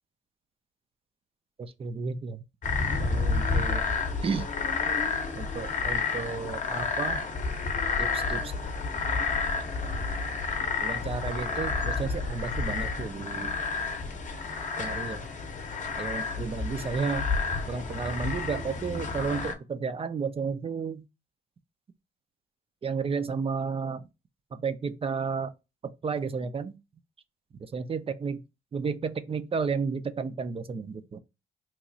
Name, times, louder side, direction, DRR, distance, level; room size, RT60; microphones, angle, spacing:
voice 1, 1.6-2.4 3.0-3.8 4.2-4.5 5.4-7.3 8.0-8.6 10.8-13.5 14.8-15.3 16.0-17.2 17.7-21.0 22.8-24.1 24.5-25.5 25.8-26.8 27.7-28.4 28.7-31.2, right 5 dB, 30° right, 0.4 m, -32 dB
sound 1, 2.6-19.5, left 4 dB, 40° left, 0.8 m, -30 dB
3.0 x 2.3 x 3.8 m
cardioid pair, 90°, 20 cm